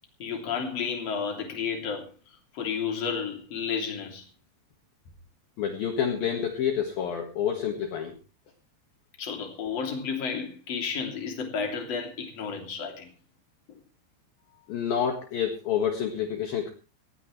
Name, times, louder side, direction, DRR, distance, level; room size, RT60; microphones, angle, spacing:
voice 1, 0.2-4.3 9.2-13.1, left 6 dB, 35° left, 3.6 m, -32 dB
voice 2, 5.6-8.1 14.7-16.7, left 8 dB, 60° left, 3.1 m, -28 dB
19.0 x 17.0 x 3.3 m
omnidirectional pair, 5.6 m